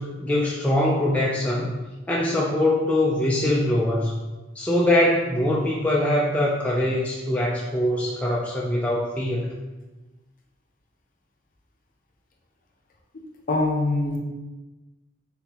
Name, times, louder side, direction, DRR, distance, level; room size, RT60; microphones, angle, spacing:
voice 1, 0.0-1.8 2.1-4.1 4.6-9.6, left 1 dB, 5° left, -4 dB, 0.4 m, -23 dB
voice 2, 13.5-14.2, left 2 dB, 45° left, 0 dB, 0.7 m, -23 dB
4.2 x 3.9 x 2.8 m, 1.1 s
head